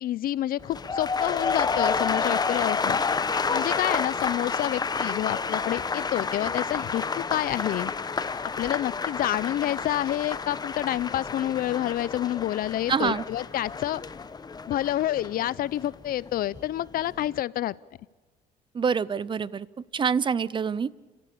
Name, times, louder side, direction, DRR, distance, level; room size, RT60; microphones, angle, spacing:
voice 1, 0.0-3.0 3.5-7.9 8.6-14.0 14.7-17.7, left 13 dB, 60° left, 21 dB, 0.6 m, -28 dB
sound 1, 0.6-16.7 17.0-17.4, left 5 dB, 25° left, 0.9 m, -30 dB
voice 2, 12.9-13.2 18.7-19.7 19.9-20.9, right 6 dB, 30° right, 21 dB, 0.6 m, -26 dB
30.0 x 14.0 x 8.5 m, 1.4 s
cardioid pair, 110°, 17 cm